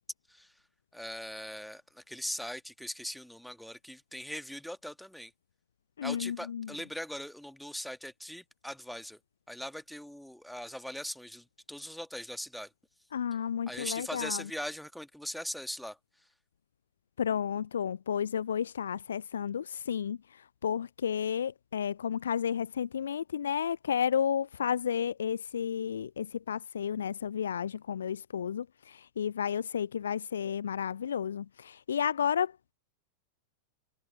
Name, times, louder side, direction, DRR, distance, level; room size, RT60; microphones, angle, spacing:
voice 1, 0.9-5.3 6.0-9.2 9.5-12.7 13.7-16.0, equal, ahead, 1.9 m, -40 dB
voice 2, 6.0-6.7 13.1-14.4 17.2-32.5, left 8 dB, 65° left, 0.6 m, -32 dB
figure-of-eight pair, 90°, 0 cm